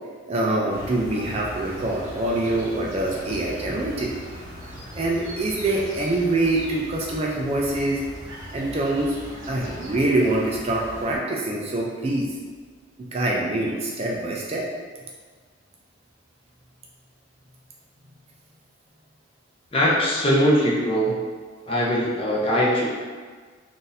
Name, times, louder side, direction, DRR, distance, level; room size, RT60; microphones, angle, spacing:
voice 1, 0.3-4.1 4.9-8.0 8.5-9.1 9.5-12.3 13.1-14.6, right 2 dB, 30° right, -2 dB, 0.4 m, -24 dB
sound 1, 0.7-11.2, equal, 80° right, 0.8 m, -39 dB
voice 2, 19.7-21.1 21.7-22.9, equal, 30° left, -5 dB, 0.7 m, -21 dB
2.6 x 2.6 x 3.9 m, 1.5 s
head